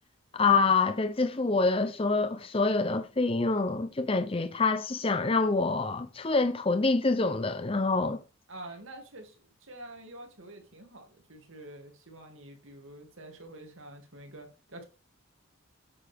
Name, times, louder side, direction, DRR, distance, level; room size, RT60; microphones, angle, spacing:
voice 1, 0.3-8.2, left 3 dB, 25° left, 0.6 m, -26 dB
voice 2, 8.5-14.8, right 1 dB, 70° right, 2.6 m, -47 dB
8.8 x 8.6 x 3.5 m
head